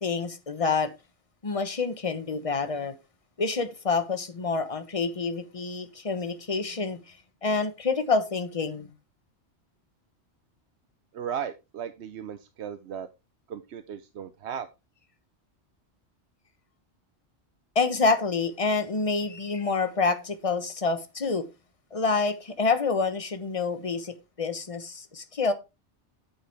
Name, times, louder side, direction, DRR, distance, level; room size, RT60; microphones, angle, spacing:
voice 1, 0.0-0.9 1.4-2.9 3.4-7.2 7.4-8.9 17.7-21.5 21.9-25.5, left 4 dB, 30° left, 1.2 m, -27 dB
voice 2, 11.1-13.1 13.5-14.7, right 8 dB, 70° right, 1.0 m, -36 dB
8.6 x 8.4 x 3.5 m
omnidirectional pair, 1.2 m